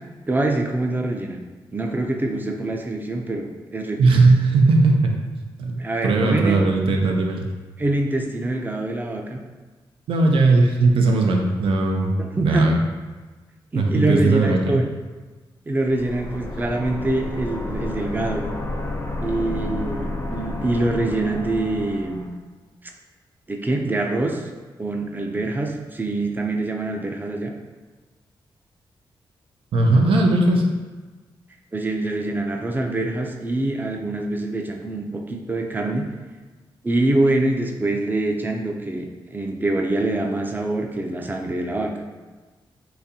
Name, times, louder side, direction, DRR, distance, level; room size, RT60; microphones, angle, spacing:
voice 1, 0.3-1.4 1.7-4.0 5.8-6.6 7.8-9.4 12.2-12.7 13.7-14.9 15.7-18.5 19.2-22.3 22.8-22.9 23.5-24.5 24.8-27.5 31.7-36.1 36.8-41.9, right 2 dB, 20° right, 2 dB, 0.5 m, -25 dB
voice 2, 4.0-5.1 5.6-7.4 10.1-12.1 12.4-12.8 13.7-14.8 29.7-30.6, right 3 dB, 90° right, 2 dB, 0.4 m, -18 dB
sound 1, 15.9-22.3, left 2 dB, 30° left, 0.5 m, -31 dB
4.0 x 2.6 x 2.7 m, 1.3 s
cardioid pair, 70°, 9 cm